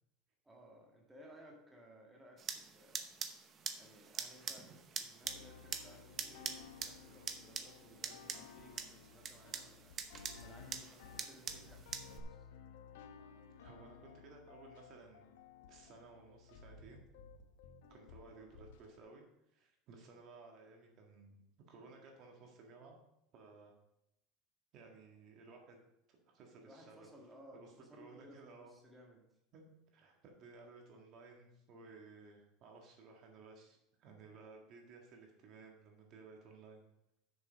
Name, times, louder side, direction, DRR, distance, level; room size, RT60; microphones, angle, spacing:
voice 1, 0.4-3.0 3.8-9.9 10.4-12.5 18.3-18.5 26.6-29.2, equal, 10° right, -1 dB, 1.8 m, -60 dB
sound 1, 2.4-12.2, right 6 dB, 30° right, 0.8 m, -45 dB
sound 2, 5.2-19.0, left 6 dB, 85° left, 0.8 m, -57 dB
voice 2, 13.6-15.3 15.7-17.0 17.9-19.2 19.5-21.4 21.7-23.0 23.3-23.7 24.7-25.8 26.1-27.1 27.5-28.7 29.5-36.8, right 4 dB, 45° right, 1 dB, 1.7 m, -57 dB
6.9 x 6.7 x 5.1 m, 0.81 s
supercardioid pair, 140°, 0 cm